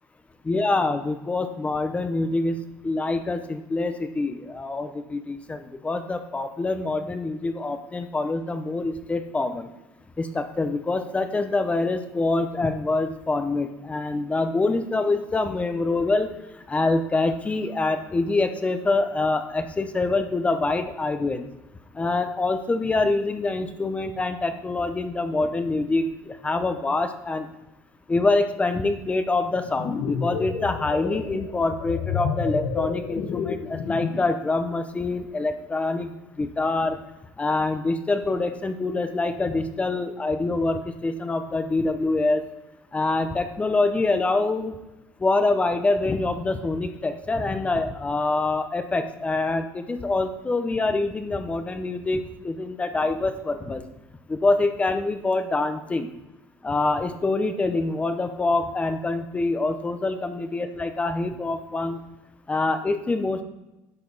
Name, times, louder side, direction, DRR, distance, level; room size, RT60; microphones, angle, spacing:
voice 1, 0.4-2.6 2.8-9.7 10.2-16.3 16.7-21.5 21.9-27.5 28.1-37.0 37.4-42.4 42.9-44.8 45.2-53.8 54.3-56.1 56.6-62.0 62.5-63.4, left 3 dB, 15° left, 8 dB, 0.7 m, -25 dB
sound 1, 29.6-34.4, left 6 dB, 60° left, 0.9 m, -30 dB
10.5 x 6.7 x 4.0 m, 0.99 s
cardioid pair, 130°, 8 cm